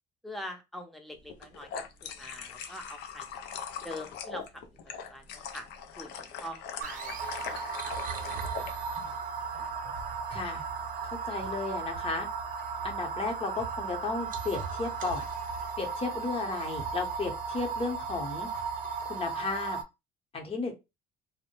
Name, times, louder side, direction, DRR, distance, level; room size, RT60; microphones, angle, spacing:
voice 1, 0.2-3.4 3.8-4.6 5.1-5.7 5.9-9.2 9.4-9.7, left 1 dB, ahead, 4 dB, 0.6 m, -45 dB
Hotwater from pod, 1.3-8.7, left 7 dB, 80° left, 0.4 m, -41 dB
sound 1, 6.8-19.8, right 5 dB, 55° right, 0.6 m, -36 dB
voice 2, 10.3-10.6 11.2-12.3 12.8-15.2 15.8-18.5 19.1-19.8 20.3-20.7, left 3 dB, 35° left, 4 dB, 0.8 m, -34 dB
2.1 x 2.0 x 2.9 m, 0.24 s
cardioid pair, 110°, 17 cm